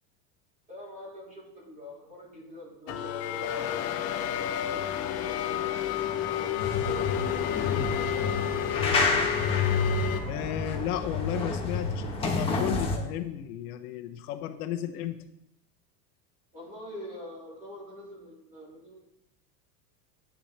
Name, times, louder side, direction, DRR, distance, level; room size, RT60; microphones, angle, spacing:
voice 1, 0.7-4.1 4.5-8.3 16.5-19.0, equal, 15° right, -5 dB, 3.4 m, -45 dB
sound 1, 2.9-10.2, left 10 dB, 35° left, 0.7 m, -30 dB
sound 2, 6.6-13.0, left 3 dB, 10° left, 1.1 m, -29 dB
voice 2, 10.3-15.2, left 11 dB, 70° left, 7 dB, 0.9 m, -34 dB
11.5 x 8.6 x 3.3 m, 0.83 s
supercardioid pair, 170°, 46 cm